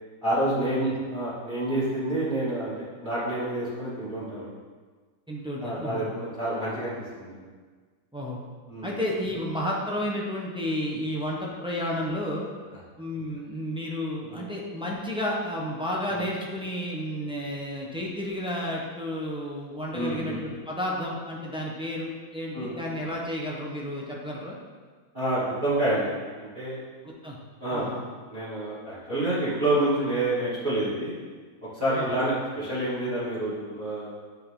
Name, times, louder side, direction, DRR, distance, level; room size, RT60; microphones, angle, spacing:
voice 1, 0.2-2.7 3.0-4.5 5.6-7.4 8.7-9.0 14.2-14.5 16.1-16.2 19.9-20.4 22.5-22.7 25.1-26.1 26.4-26.8 27.6-27.9 28.3-31.2 31.7-34.1, right 1 dB, 25° right, -13 dB, 2.6 m, -28 dB
voice 2, 5.3-6.1 8.1-8.4 8.8-12.5 13.0-24.6 27.0-27.4 27.7-28.0 31.9-32.1, left 1 dB, 5° right, -3 dB, 0.5 m, -32 dB
10.5 x 4.5 x 3.8 m, 1.5 s
omnidirectional pair, 2.1 m